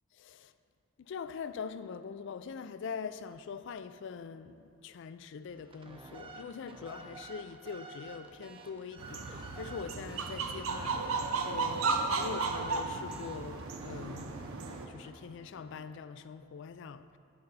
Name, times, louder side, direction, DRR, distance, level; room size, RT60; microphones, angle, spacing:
voice 1, 0.2-0.5 1.0-11.1 11.3-14.4 14.9-17.2, left 6 dB, 60° left, 0.3 m, -43 dB
sound 1, 5.5-16.1, right 2 dB, 25° right, 0.6 m, -50 dB
sound 2, 9.0-14.9, right 4 dB, 75° right, 0.6 m, -34 dB
8.8 x 7.8 x 4.1 m
head